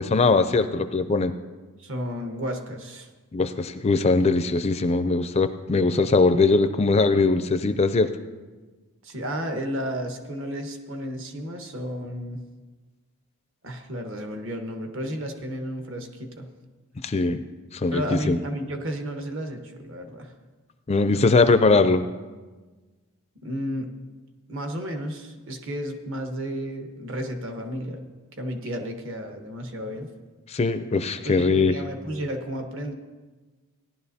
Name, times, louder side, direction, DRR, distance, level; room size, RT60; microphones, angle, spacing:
voice 1, 0.0-1.3 3.3-8.1 17.0-17.4 17.7-18.0 18.3-18.4 20.9-22.0 30.5-31.7, left 3 dB, 30° left, 10 dB, 0.4 m, -21 dB
voice 2, 1.8-3.1 9.0-12.4 13.6-16.5 17.9-20.3 21.1-21.2 21.5-21.6 23.4-23.9 24.5-28.0 28.4-30.1 31.2-32.9, equal, 60° right, 4 dB, 1.2 m, -32 dB
17.5 x 11.0 x 2.7 m, 1.3 s
head